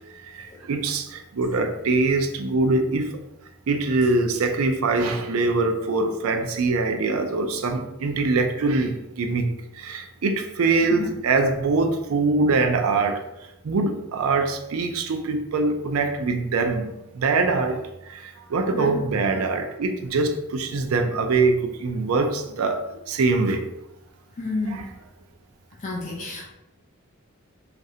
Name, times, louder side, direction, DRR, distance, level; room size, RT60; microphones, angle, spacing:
voice 1, 0.3-3.1 3.7-9.4 9.8-13.2 13.6-17.8 18.1-23.6 24.7-24.9, right 3 dB, 75° right, 5 dB, 0.4 m, -23 dB
voice 2, 18.7-19.1 24.4-24.9 25.8-26.5, left 3 dB, 35° left, -1 dB, 0.4 m, -30 dB
3.1 x 2.5 x 2.7 m, 0.91 s
head